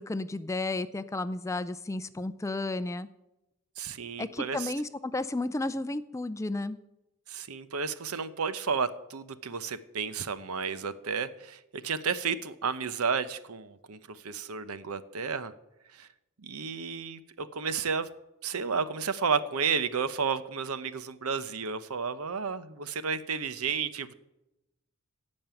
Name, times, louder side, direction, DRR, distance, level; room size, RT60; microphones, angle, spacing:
voice 1, 0.0-3.1 4.2-6.8, left 2 dB, 15° left, 13 dB, 0.4 m, -32 dB
voice 2, 3.8-4.7 7.3-15.5 15.9-16.1 16.4-18.1 18.4-24.1, right 5 dB, 85° right, 13 dB, 0.8 m, -32 dB
16.0 x 5.4 x 9.0 m, 0.93 s
head